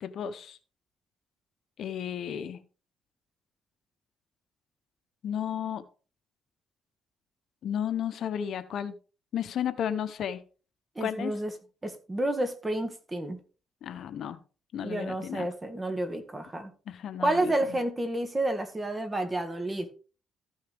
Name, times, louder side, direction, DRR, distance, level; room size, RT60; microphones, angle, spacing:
voice 1, 0.0-0.6 1.8-2.6 5.2-5.8 7.6-8.9 9.3-10.4 11.0-11.3 13.8-14.4 14.7-15.5 16.9-17.8, left 9 dB, 70° left, 11 dB, 0.9 m, -33 dB
voice 2, 11.0-11.5 11.8-13.4 14.8-16.7 17.2-19.9, right 1 dB, 20° right, 7 dB, 1.9 m, -30 dB
14.0 x 6.5 x 3.5 m, 0.37 s
cardioid pair, 90°, 0 cm